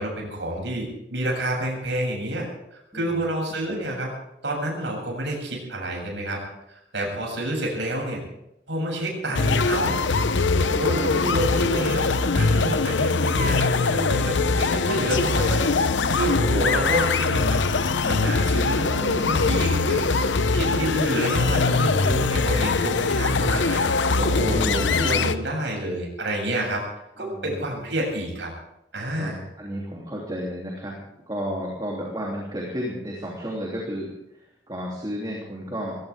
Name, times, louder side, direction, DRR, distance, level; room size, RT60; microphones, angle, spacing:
voice 1, 0.0-2.5 2.9-4.1 4.4-6.4 6.9-8.2 8.7-10.0 10.6-12.1 12.3-15.7 16.1-20.1 20.5-23.8 24.1-26.8 27.2-28.5 28.9-29.4, right 1 dB, 75° right, -1 dB, 7.6 m, -28 dB
sound 1, 9.3-25.3, left 3 dB, 85° left, 0.8 m, -22 dB
voice 2, 27.2-27.6 29.2-31.0 31.3-36.0, equal, 25° right, -2 dB, 3.2 m, -33 dB
21.5 x 17.5 x 3.7 m, 0.83 s
head